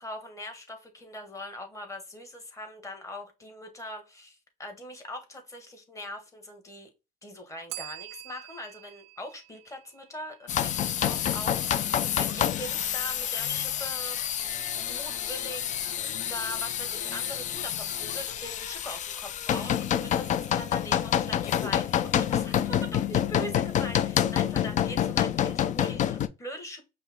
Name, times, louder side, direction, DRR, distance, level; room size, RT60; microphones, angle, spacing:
voice 1, 0.0-6.9 7.2-11.9 12.2-26.9, left 1 dB, 20° left, 1.3 m, -41 dB
Bell, 7.7-10.5, right 18 dB, 80° right, 0.5 m, -45 dB
sound 1, 10.5-26.3, left 10 dB, 45° left, 0.4 m, -28 dB
5.3 x 2.1 x 3.5 m
cardioid pair, 110°, 17 cm